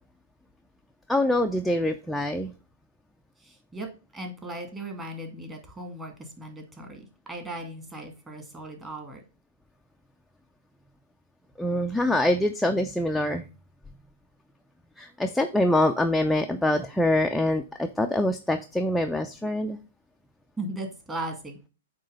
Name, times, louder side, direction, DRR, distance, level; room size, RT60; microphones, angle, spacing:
voice 1, 1.1-2.5 11.6-13.4 15.0-19.8, left 1 dB, ahead, 3 dB, 0.5 m, -25 dB
voice 2, 3.4-3.9 4.1-9.2 15.1-15.2 20.6-21.7, right 1 dB, 15° right, 3 dB, 1.9 m, -37 dB
8.5 x 3.0 x 5.3 m, 0.32 s
figure-of-eight pair, 110°, 0 cm